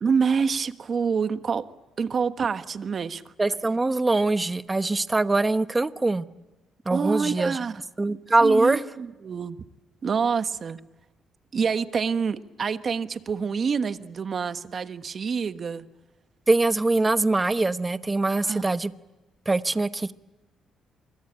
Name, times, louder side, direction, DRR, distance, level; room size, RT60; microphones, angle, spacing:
voice 1, 0.0-1.7 2.0-3.3 6.9-7.8 8.4-9.6 10.0-10.8 11.5-15.9 18.4-18.6, right 6 dB, 45° right, 11 dB, 1.3 m, -27 dB
voice 2, 3.4-6.2 6.9-7.6 8.0-8.8 16.5-18.9 19.5-20.1, right 2 dB, 20° right, 12 dB, 1.0 m, -23 dB
26.5 x 23.0 x 8.8 m, 1.1 s
cardioid pair, 90°, 0 cm